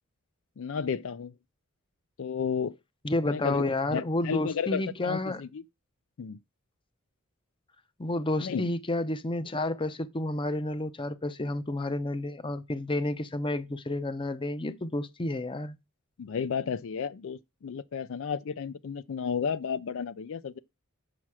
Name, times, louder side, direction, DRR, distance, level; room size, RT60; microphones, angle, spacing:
voice 1, 0.6-1.4 2.2-2.8 3.2-3.6 3.9-5.6 6.2-6.4 8.4-8.7 16.2-20.6, left 6 dB, 65° left, 0.4 m, -32 dB
voice 2, 3.0-5.4 8.0-15.8, left 2 dB, 25° left, 0.6 m, -30 dB
7.3 x 6.0 x 4.7 m
head